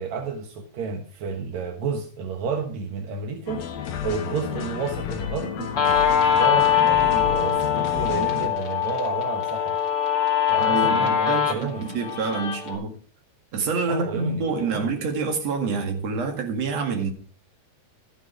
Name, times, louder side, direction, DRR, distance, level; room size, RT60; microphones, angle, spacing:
voice 1, 0.0-3.6 4.0-5.7 6.3-9.8 10.5-11.9 13.9-14.9, right 5 dB, 65° right, 1.8 m, -31 dB
sound 1, 3.5-8.5, left 8 dB, 65° left, 2.8 m, -31 dB
Guitar, 5.8-12.7, left 9 dB, 25° left, 2.4 m, -22 dB
voice 2, 10.6-12.9 13.5-17.1, right 4 dB, 50° right, 2.4 m, -27 dB
13.0 x 8.7 x 4.8 m
omnidirectional pair, 5.0 m